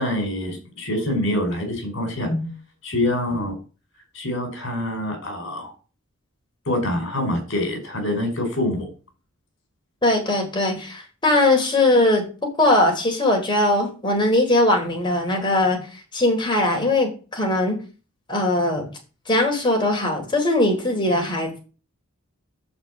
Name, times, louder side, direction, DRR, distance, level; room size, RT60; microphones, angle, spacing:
voice 1, 0.0-2.5 2.8-3.5 4.1-5.7 6.7-8.9, left 1 dB, 60° left, 5 dB, 5.1 m, -25 dB
voice 2, 10.0-12.2 12.6-15.8 16.1-17.8 18.3-18.9 19.3-21.6, left 1 dB, 20° left, 1 dB, 4.0 m, -20 dB
11.5 x 5.3 x 8.6 m, 0.36 s
head